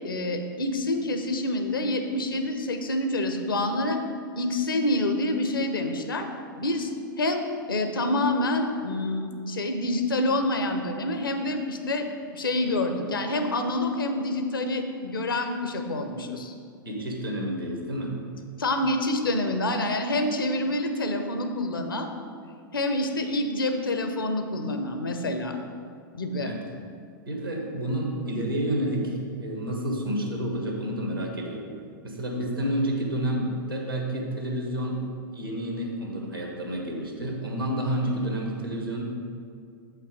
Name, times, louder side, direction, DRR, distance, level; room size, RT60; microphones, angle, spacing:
voice 1, 0.0-4.0 4.4-6.3 6.6-12.1 12.3-16.5 18.6-22.1 22.7-25.6 26.1-26.5, left 1 dB, 75° left, 6 dB, 0.8 m, -27 dB
voice 2, 16.8-18.1 26.4-26.6 27.3-31.6 32.0-35.0 35.3-39.0, right 1 dB, 90° right, 0 dB, 1.6 m, -29 dB
8.0 x 5.7 x 5.0 m, 2.3 s
figure-of-eight pair, 95°, 12 cm